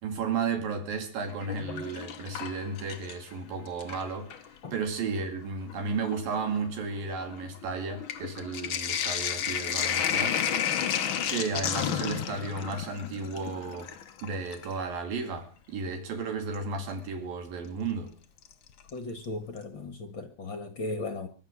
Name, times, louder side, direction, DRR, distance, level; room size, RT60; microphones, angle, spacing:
voice 1, 0.0-4.3 4.7-10.4 11.3-13.9 14.2-18.2, right 4 dB, 80° right, 4.2 m, -33 dB
Sink (filling or washing), 1.3-3.3 3.7-4.5 5.3-5.4 5.7-14.8 16.5-16.6 18.4-18.9 19.2-19.3 19.6-19.7, left 9 dB, 85° left, 1.1 m, -32 dB
voice 2, 18.9-21.3, left 2 dB, 50° left, 1.6 m, -36 dB
23.5 x 9.1 x 6.3 m
omnidirectional pair, 4.0 m